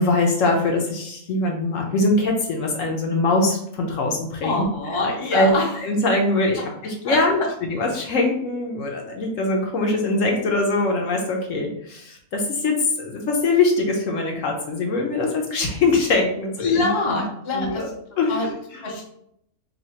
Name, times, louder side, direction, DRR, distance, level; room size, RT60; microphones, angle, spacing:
voice 1, 0.0-4.6 5.3-5.5 5.8-17.2 17.5-17.9 18.2-18.8, left 2 dB, 65° left, 1 dB, 1.0 m, -22 dB
voice 2, 4.4-5.7 7.0-7.2 16.6-17.9 18.3-18.5 18.8-19.1, left 3 dB, 30° left, -1 dB, 0.6 m, -24 dB
2.7 x 2.7 x 4.3 m, 0.73 s
omnidirectional pair, 1.5 m